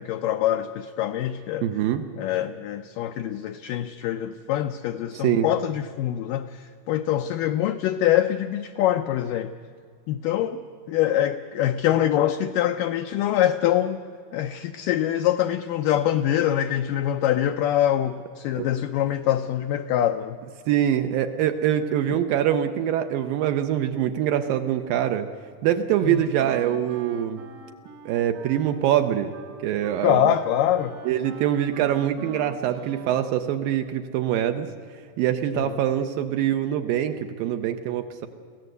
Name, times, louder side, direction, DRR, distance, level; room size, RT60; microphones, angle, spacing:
voice 1, 0.0-1.7 2.2-9.5 10.1-14.0 14.3-20.4 26.0-26.2 30.0-31.0 35.5-35.8, left 11 dB, 80° left, 7 dB, 2.0 m, -24 dB
voice 2, 1.6-2.1 5.1-5.5 18.6-18.7 20.7-25.3 25.6-27.4 28.1-29.3 29.6-30.3 31.1-34.7 35.2-38.3, right 10 dB, 75° right, 7 dB, 2.3 m, -24 dB
Wind instrument woodwind instrument, 25.9-33.4, right 6 dB, 55° right, 1.8 m, -45 dB
24.0 x 16.5 x 8.0 m, 2.2 s
omnidirectional pair, 4.5 m